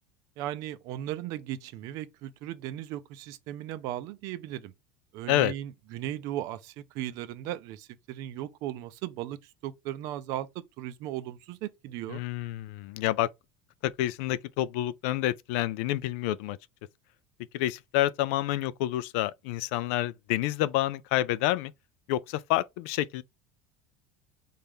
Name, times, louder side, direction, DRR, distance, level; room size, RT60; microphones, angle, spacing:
voice 1, 0.4-4.7 5.1-12.2, right 13 dB, 55° right, 0.5 m, -37 dB
voice 2, 12.1-13.3 13.8-16.6 17.5-21.7 22.1-23.2, left 14 dB, 70° left, 0.4 m, -28 dB
4.1 x 3.4 x 3.5 m
cardioid pair, 160°, 7 cm